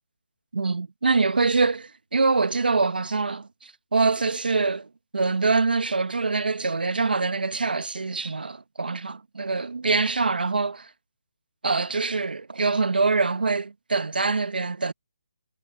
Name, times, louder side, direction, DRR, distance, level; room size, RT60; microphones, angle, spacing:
voice 1, 0.5-4.9 5.1-10.9 11.6-14.9, right 4 dB, 90° right, 1.3 m, -24 dB
hypercardioid pair, 170°, 5 cm